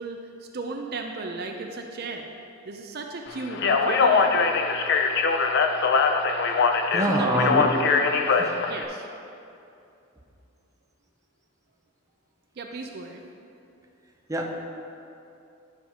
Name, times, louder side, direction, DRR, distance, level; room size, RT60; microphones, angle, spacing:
voice 1, 0.0-2.3 2.6-4.6 6.8-7.6 8.7-9.1 12.6-13.2, right 3 dB, 50° right, 3 dB, 0.5 m, -36 dB
Speech, 3.5-8.8, left 4 dB, 60° left, 0.5 m, -22 dB
voice 2, 6.9-7.7 8.4-8.5 14.3-14.6, right 1 dB, 15° right, 0 dB, 0.7 m, -24 dB
11.5 x 5.7 x 2.9 m, 2.6 s
head